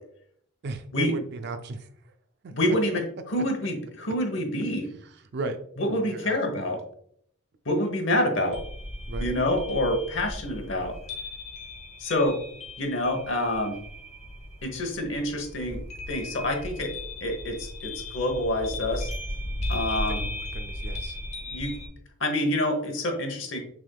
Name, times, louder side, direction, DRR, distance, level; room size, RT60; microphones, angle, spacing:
voice 1, 0.6-1.9 2.4-2.5 4.9-5.0 5.3-5.6 5.9-6.4 6.7-6.8 9.1-9.3 20.0-21.2, right 2 dB, 50° right, 7 dB, 0.4 m, -35 dB
voice 2, 2.5-4.9 5.8-6.8 7.7-8.6 9.2-10.9 12.0-12.4 12.8-13.8 14.6-15.8 16.1-16.9 17.2-19.1 19.7-20.2 21.5-21.8 22.2-23.6, left 1 dB, 60° left, 4 dB, 0.9 m, -27 dB
sound 1, 8.5-21.9, left 1 dB, 30° left, 0.8 m, -36 dB
6.2 x 3.5 x 2.2 m, 0.66 s
head